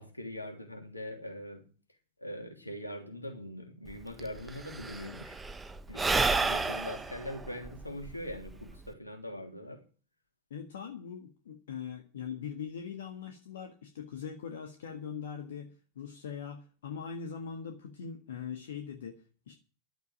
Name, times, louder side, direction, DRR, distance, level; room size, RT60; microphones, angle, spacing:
voice 1, 0.0-1.7 2.2-5.4 5.9-9.8, left 1 dB, 85° left, 2.9 m, -42 dB
Sigh / Breathing, 3.9-4.0 4.2-8.9, right 3 dB, 15° right, 1.1 m, -31 dB
voice 2, 10.5-19.5, left 7 dB, 65° left, 1.6 m, -41 dB
11.5 x 8.0 x 8.7 m
figure-of-eight pair, 85°, 0 cm